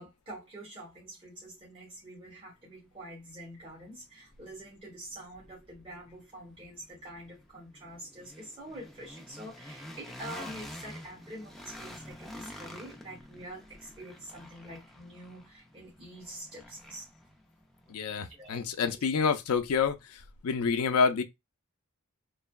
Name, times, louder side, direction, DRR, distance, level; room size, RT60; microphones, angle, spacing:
voice 1, 0.0-17.1 18.4-19.0, right 1 dB, 25° right, 1.2 m, -46 dB
sound 1, 2.7-2.8 3.2-19.2, left 1 dB, ahead, 0.4 m, -49 dB
voice 2, 17.9-21.2, left 5 dB, 80° left, 0.4 m, -28 dB
3.2 x 2.1 x 2.2 m
head